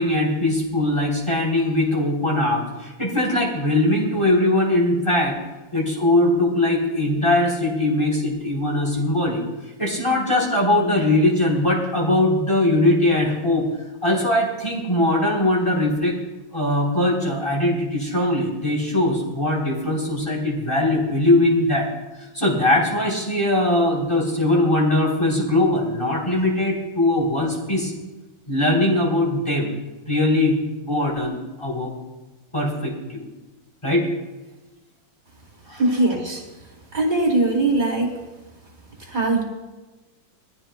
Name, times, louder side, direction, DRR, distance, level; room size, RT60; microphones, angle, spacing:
voice 1, 0.0-5.4 5.7-9.4 9.8-13.6 14.0-16.2 16.5-21.9 22.3-27.9 28.5-29.7 30.1-31.9 32.5-33.3 33.8-34.1 35.7-35.8, left 1 dB, 15° left, -4 dB, 4.0 m, -21 dB
voice 2, 35.8-36.4 36.9-38.2 39.0-39.4, right 2 dB, 35° right, -2 dB, 3.8 m, -21 dB
22.0 x 14.5 x 2.3 m, 1.1 s
omnidirectional pair, 2.0 m